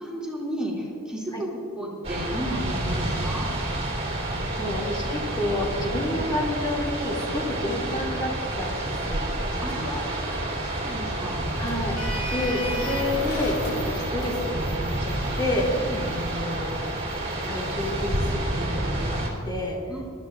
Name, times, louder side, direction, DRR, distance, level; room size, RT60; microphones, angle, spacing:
voice 1, 0.0-1.5 1.7-3.5 9.6-10.1 10.6-11.3 15.8-16.1 19.9-20.0, equal, 5° right, -6 dB, 2.5 m, -33 dB
sound 1, 2.0-19.3, right 1 dB, 30° right, 3.5 m, -29 dB
voice 2, 4.3-10.4 11.5-12.0 12.3-16.8 17.5-19.8, left 1 dB, 20° left, -3 dB, 2.5 m, -30 dB
Sliding door, 9.0-18.2, equal, 80° left, 2.2 m, -35 dB
24.5 x 13.5 x 2.5 m, 2.6 s
head